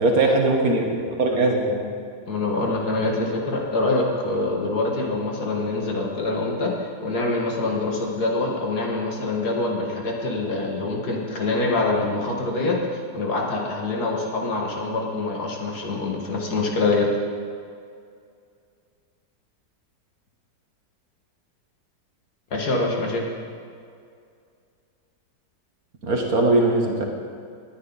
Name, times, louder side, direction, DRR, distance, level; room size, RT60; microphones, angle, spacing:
voice 1, 0.0-1.9 26.0-27.0, right 2 dB, 55° right, 1 dB, 1.8 m, -20 dB
voice 2, 2.3-6.8 7.0-17.1 22.5-23.3, left 2 dB, 60° left, -1 dB, 2.2 m, -25 dB
19.5 x 10.5 x 4.0 m, 2.3 s
omnidirectional pair, 1.9 m